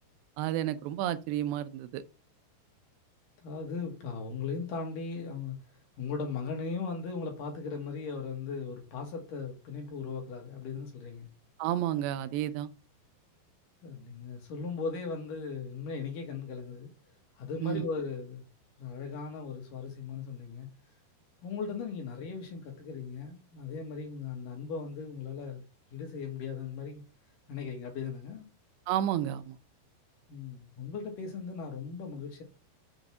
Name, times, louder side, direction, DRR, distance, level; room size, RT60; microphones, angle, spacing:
voice 1, 0.4-2.0 11.6-12.7 17.6-17.9 28.9-29.6, right 12 dB, 85° right, 2.8 m, -31 dB
voice 2, 3.4-5.6 6.0-11.3 13.8-16.9 17.4-18.4 18.8-20.7 21.4-25.6 25.9-27.0 27.5-28.5 30.3-32.4, left 5 dB, 60° left, 2.8 m, -38 dB
7.0 x 5.2 x 6.0 m
omnidirectional pair, 5.0 m